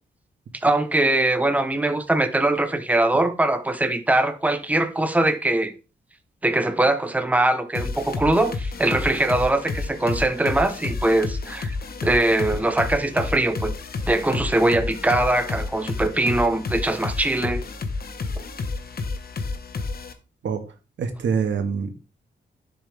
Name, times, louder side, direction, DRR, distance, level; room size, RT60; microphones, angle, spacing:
voice 1, 0.5-5.7 6.4-11.8 12.0-13.7 14.1-17.6, right 2 dB, 10° right, 1.0 m, -22 dB
sound 1, 7.7-20.1, left 3 dB, 55° left, 1.3 m, -30 dB
voice 2, 21.0-22.1, right 6 dB, 85° right, 1.7 m, -25 dB
11.0 x 7.5 x 3.5 m
wide cardioid pair, 130°, 19 cm